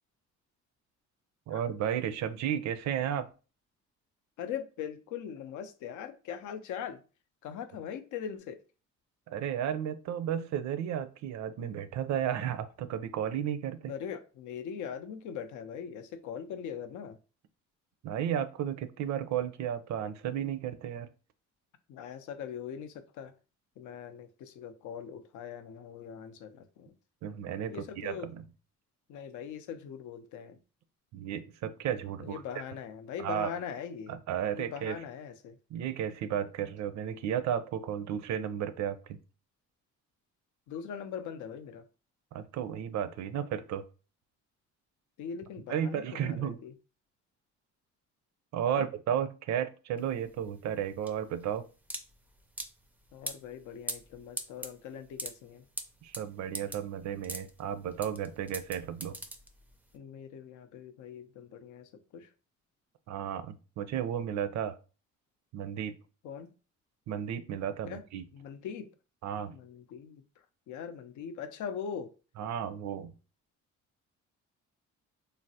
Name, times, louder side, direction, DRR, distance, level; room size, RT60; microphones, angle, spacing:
voice 1, 1.5-3.3 9.3-13.9 18.0-21.1 27.2-28.4 31.1-32.4 33.2-33.5 34.1-35.0 35.7-39.2 42.3-43.9 45.7-46.6 48.5-51.6 56.0-59.2 63.1-64.8 65.5-66.0 67.1-68.2 69.2-69.6 72.4-73.1, right 9 dB, 65° right, 0.4 m, -33 dB
voice 2, 4.4-7.0 7.4-8.6 13.9-17.2 21.9-23.3 23.8-26.9 27.7-28.3 29.1-30.6 32.2-34.2 34.5-35.6 40.7-41.9 45.2-46.7 48.7-48.9 53.1-55.7 59.9-62.3 66.2-66.5 67.9-68.0 68.3-68.9 69.5-70.2 70.7-72.1, left 8 dB, 75° left, 0.5 m, -41 dB
sound 1, 50.0-59.9, right 1 dB, 5° right, 0.3 m, -42 dB
3.3 x 2.0 x 2.7 m
cardioid pair, 90°, 30 cm